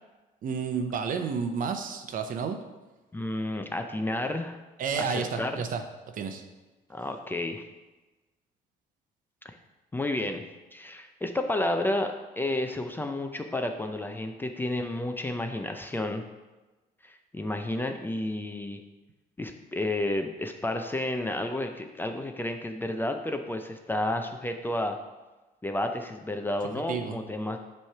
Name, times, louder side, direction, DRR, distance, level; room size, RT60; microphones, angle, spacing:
voice 1, 0.4-2.6 4.8-5.8 6.1-6.4 26.9-27.2, right 6 dB, 55° right, 7 dB, 0.7 m, -30 dB
voice 2, 3.1-4.6 5.0-5.5 6.9-7.6 9.4-9.6 9.9-10.4 10.7-16.2 17.0-18.8 19.4-25.0 25.6-27.6, left 1 dB, 10° left, 5 dB, 0.5 m, -31 dB
7.4 x 3.2 x 5.6 m, 1.1 s
cardioid pair, 110°, 17 cm